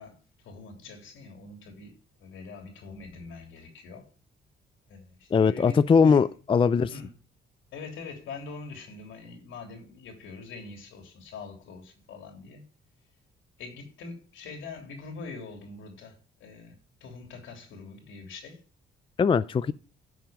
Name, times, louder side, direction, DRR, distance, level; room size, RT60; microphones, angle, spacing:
voice 1, 0.0-4.1 4.9-6.3 6.9-7.1 7.7-12.6 13.6-16.7 17.0-18.6 19.7-19.8, left 4 dB, 80° left, 3.1 m, -43 dB
voice 2, 5.3-6.9 19.2-19.7, left 5 dB, 25° left, 0.4 m, -21 dB
11.5 x 6.2 x 5.0 m
cardioid pair, 90°, 20 cm